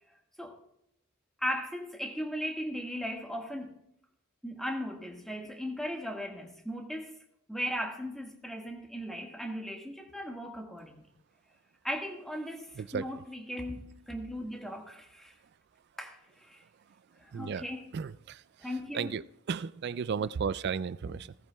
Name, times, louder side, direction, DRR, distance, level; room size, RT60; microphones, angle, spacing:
voice 1, 1.4-3.7 4.4-7.2 7.5-11.1 11.8-15.3 16.0-16.6 17.2-17.9 18.6-19.1 21.0-21.2, equal, ahead, 1.7 m, -37 dB
voice 2, 12.8-13.1 17.3-17.6 17.9-18.7 18.9-21.3, right 6 dB, 55° right, 0.3 m, -34 dB
17.0 x 14.5 x 2.3 m
head